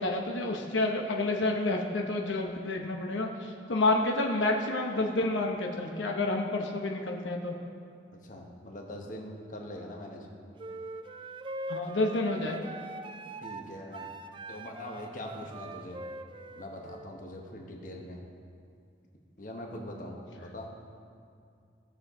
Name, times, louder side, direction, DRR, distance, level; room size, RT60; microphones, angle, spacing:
voice 1, 0.0-7.5 11.7-12.7, left 2 dB, 90° left, 2 dB, 0.9 m, -29 dB
voice 2, 8.2-10.3 13.4-14.1 14.5-16.0 16.5-18.2 19.4-20.7, left 1 dB, 45° left, 0 dB, 1.2 m, -42 dB
sound 1, 10.6-17.1, right 2 dB, 25° right, 0.3 m, -42 dB
17.0 x 6.7 x 3.7 m, 2.4 s
head